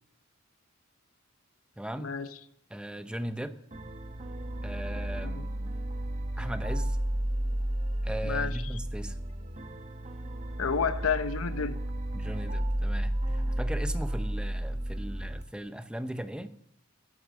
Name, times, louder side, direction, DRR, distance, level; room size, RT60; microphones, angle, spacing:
voice 1, 1.8-2.1 2.7-3.5 4.6-5.8 6.4-7.0 8.0-9.2 12.1-16.5, right 1 dB, 5° right, 10 dB, 0.6 m, -38 dB
sound 1, 3.7-15.4, right 1 dB, 35° right, 1.0 m, -32 dB
voice 2, 10.6-11.8, left 6 dB, 85° left, 12 dB, 0.8 m, -30 dB
10.5 x 9.8 x 6.4 m, 0.71 s
head